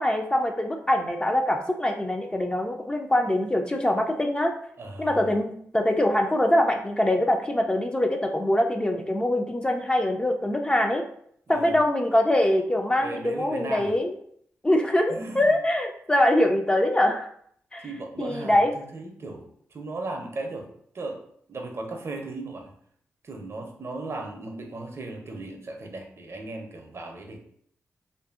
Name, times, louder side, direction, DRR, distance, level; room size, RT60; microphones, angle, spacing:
voice 1, 0.0-4.5 5.0-11.0 11.5-14.2 14.6-17.3 17.7-17.9 18.2-18.7, left 1 dB, 15° left, 3 dB, 0.4 m, -23 dB
voice 2, 4.8-5.1 11.5-11.7 13.0-13.9 15.1-15.6 17.8-19.4 19.7-20.7 20.9-21.2 21.5-22.7 23.2-27.4, right 2 dB, 55° right, 3 dB, 0.6 m, -36 dB
2.6 x 2.5 x 2.4 m, 0.64 s
cardioid pair, 60°, 5 cm